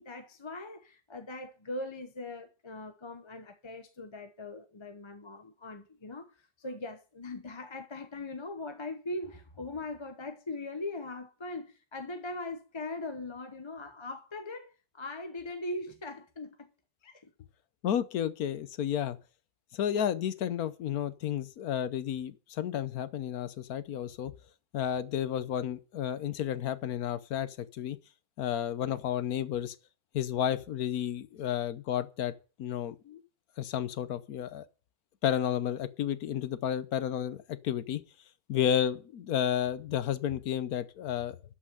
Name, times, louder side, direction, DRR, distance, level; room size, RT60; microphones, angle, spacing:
voice 1, 0.0-16.7 17.0-17.3, left 2 dB, 25° left, 0.7 m, -40 dB
voice 2, 17.8-19.2 19.7-24.3 24.7-28.0 28.4-29.7 30.1-32.3 32.6-33.2 33.6-34.6 35.2-38.0 38.5-41.4, left 10 dB, 85° left, 1.3 m, -32 dB
12.5 x 5.8 x 7.8 m
omnidirectional pair, 1.5 m